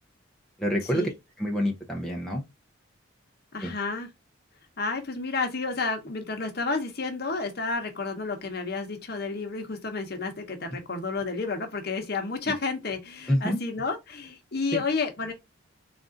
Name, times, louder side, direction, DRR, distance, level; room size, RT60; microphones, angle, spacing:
voice 1, 0.6-1.1 1.4-2.4 3.6-3.7 13.3-13.6 14.7-14.8, equal, 5° left, 0.6 m, -27 dB
voice 2, 3.5-4.1 4.8-15.3, left 4 dB, 50° left, 0.9 m, -31 dB
3.6 x 2.5 x 3.8 m
head